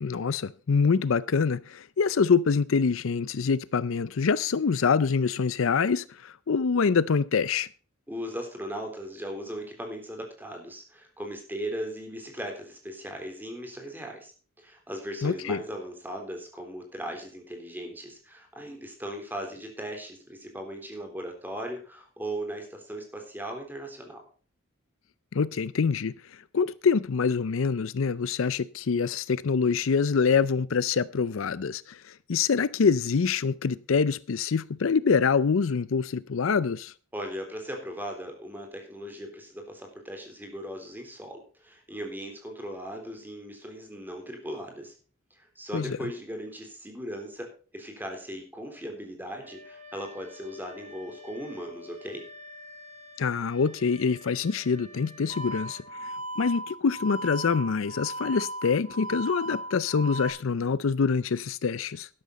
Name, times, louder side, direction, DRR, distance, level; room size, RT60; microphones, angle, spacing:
voice 1, 0.0-7.7 15.2-15.6 25.3-26.1 26.5-36.9 45.7-46.0 53.2-62.1, left 5 dB, 65° left, 0.5 m, -25 dB
voice 2, 8.1-14.3 14.6-24.2 37.1-44.9 45.3-52.2, equal, 10° right, 3.7 m, -38 dB
Wind instrument woodwind instrument, 49.4-55.9, left 2 dB, 35° right, 2.1 m, -49 dB
sound 1, 55.3-60.3, right 1 dB, 70° right, 3.7 m, -37 dB
12.0 x 12.0 x 4.1 m
head